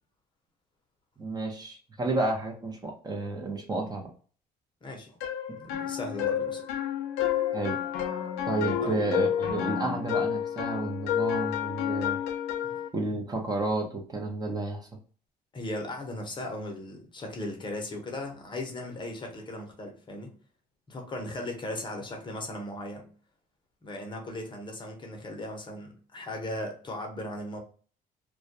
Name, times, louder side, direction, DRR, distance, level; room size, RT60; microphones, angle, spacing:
voice 1, 1.2-4.1 7.5-7.8 8.5-12.2 12.9-14.9, right 2 dB, 25° right, 1 dB, 0.6 m, -31 dB
voice 2, 4.8-5.2 5.6-6.6 8.8-9.0 12.6-12.8 15.5-20.3 20.9-23.1 23.8-27.6, left 1 dB, 30° left, 2 dB, 0.7 m, -37 dB
sound 1, 5.2-12.9, left 9 dB, 90° left, 0.4 m, -30 dB
2.2 x 2.2 x 2.6 m, 0.41 s
cardioid pair, 110°, 17 cm